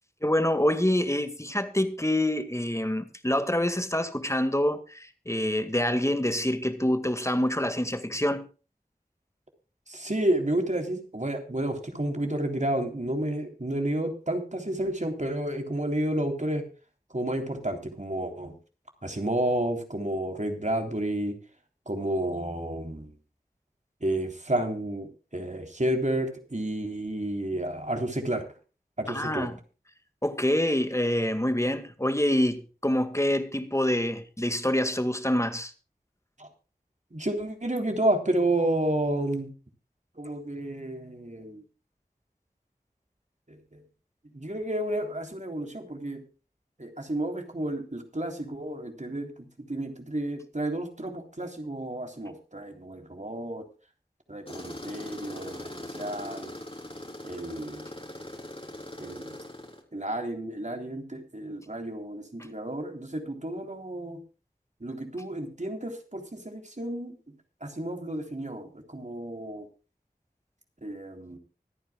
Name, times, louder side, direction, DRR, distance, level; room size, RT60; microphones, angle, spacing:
voice 1, 0.2-8.5 29.1-29.6 30.2-35.7, left 1 dB, 20° left, 1.9 m, -26 dB
voice 2, 9.9-16.6 17.1-18.6 19.0-21.3 21.9-23.1 24.0-28.4 29.0-29.5 36.4-36.5 37.1-39.5 40.2-41.6 43.5-43.8 44.3-46.2 46.8-53.6 54.3-56.5 57.2-57.9 59.0-59.4 59.9-64.2 64.8-67.2 67.6-69.7 70.8-71.4, right 1 dB, 50° right, 3.5 m, -31 dB
Tools, 54.5-59.8, left 1 dB, 35° left, 3.9 m, -41 dB
24.5 x 9.8 x 2.3 m
wide cardioid pair, 40°, 16 cm